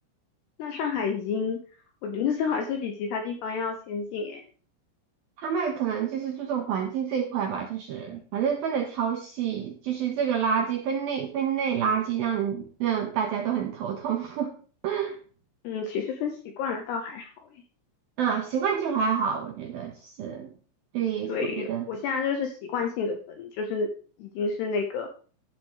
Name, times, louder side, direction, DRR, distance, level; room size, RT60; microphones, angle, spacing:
voice 1, 0.6-1.6 2.0-4.4 15.6-17.3 17.5-17.6 21.3-23.9 24.2-25.1, left 5 dB, 80° left, 4 dB, 2.5 m, -30 dB
voice 2, 5.4-14.5 14.8-15.2 18.2-20.5 20.9-21.9, right 7 dB, 85° right, 2 dB, 2.1 m, -28 dB
12.5 x 10.0 x 3.2 m, 0.40 s
omnidirectional pair, 6.0 m